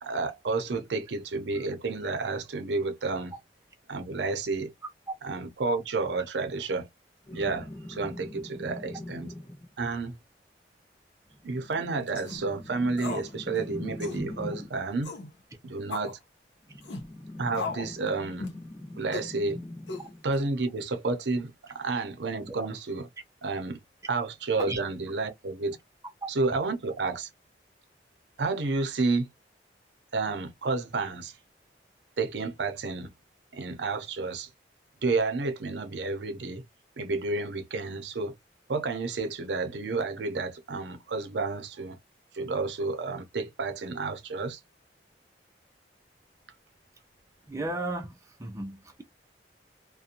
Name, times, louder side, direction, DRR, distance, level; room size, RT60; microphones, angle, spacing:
voice 1, 0.0-3.3 3.9-4.7 5.2-6.9 7.3-9.3 9.8-10.1 11.4-15.1 15.6-16.2 17.4-18.5 19.0-19.6 20.2-23.1 23.4-23.8 24.1-25.8 26.3-27.3 28.4-29.3 30.1-31.3 32.2-33.1 33.5-34.5 35.0-36.6 37.0-38.3 38.7-42.0 42.3-44.6, right 3 dB, 80° right, 0.6 m, -30 dB
sound 1, 7.2-9.7 11.3-14.8 16.6-20.2 21.8-21.9, left 1 dB, 30° left, 1.1 m, -42 dB
sound 2, 12.1-12.4 13.0-13.3 13.6-13.7 14.0-14.3 15.0-15.3 15.9-16.1 16.8-17.1 17.5-17.9 18.4-18.6 19.1-19.3 19.9-20.4, left 4 dB, 85° left, 0.8 m, -36 dB
voice 2, 47.5-48.1 48.4-49.0, right 2 dB, 15° right, 0.4 m, -34 dB
2.5 x 2.1 x 2.7 m
head